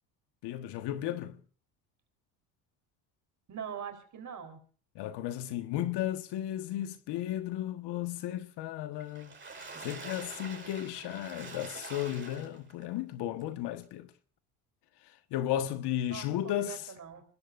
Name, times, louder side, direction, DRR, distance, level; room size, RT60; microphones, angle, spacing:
voice 1, 0.4-1.4 4.9-9.3 9.8-14.1 15.0-16.9, left 12 dB, 65° left, 1.5 m, -34 dB
voice 2, 3.5-4.6 16.1-17.2, right 8 dB, 40° right, 4.0 m, -42 dB
Water / Splash splatter, 9.0-12.8 13.4-13.5 13.8-13.9, right 4 dB, 25° right, 5.3 m, -45 dB
26.0 x 21.0 x 2.6 m
supercardioid pair, 80°, 43 cm